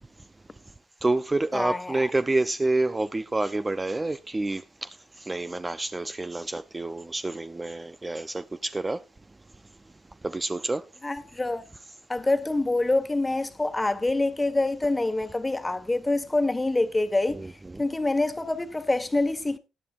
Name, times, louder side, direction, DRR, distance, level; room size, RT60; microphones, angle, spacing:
voice 1, 1.0-9.0 10.2-10.8 17.4-17.5, right 2 dB, 20° right, 0.5 m, -28 dB
voice 2, 1.5-2.1 11.0-11.6 12.1-17.4 17.8-19.6, left 2 dB, 15° left, 1.4 m, -26 dB
18.0 x 10.5 x 2.5 m
cardioid pair, 90°, 0 cm